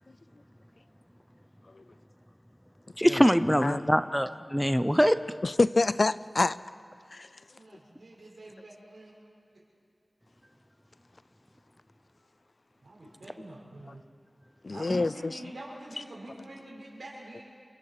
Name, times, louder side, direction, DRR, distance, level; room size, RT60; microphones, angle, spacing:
voice 1, 3.0-5.2 14.9-15.0, equal, ahead, 0.7 m, -23 dB
voice 2, 5.4-6.6 7.1-7.3 14.6-15.4, left 3 dB, 65° left, 0.5 m, -26 dB
voice 3, 7.5-9.2 12.8-14.0 14.7-17.4, right 1 dB, 90° right, 6.0 m, -46 dB
28.5 x 24.5 x 5.0 m
wide cardioid pair, 45°, 0 cm